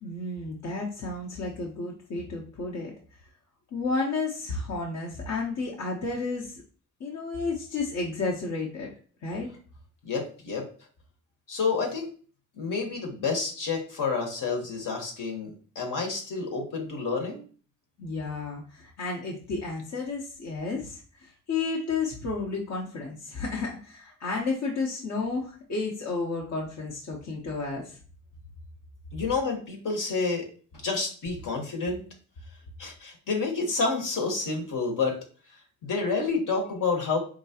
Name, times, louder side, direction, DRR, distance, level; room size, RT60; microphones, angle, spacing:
voice 1, 0.0-2.9 3.7-6.6 7.0-8.9 9.2-9.5 18.0-28.0, left 3 dB, 60° left, -2 dB, 0.9 m, -32 dB
voice 2, 10.0-10.7 11.5-12.1 12.6-17.4 29.1-30.5 30.8-32.1 32.8-35.2 35.8-37.2, left 4 dB, 75° left, 1 dB, 1.3 m, -29 dB
4.8 x 2.9 x 2.8 m, 0.41 s
cardioid pair, 100°, 33 cm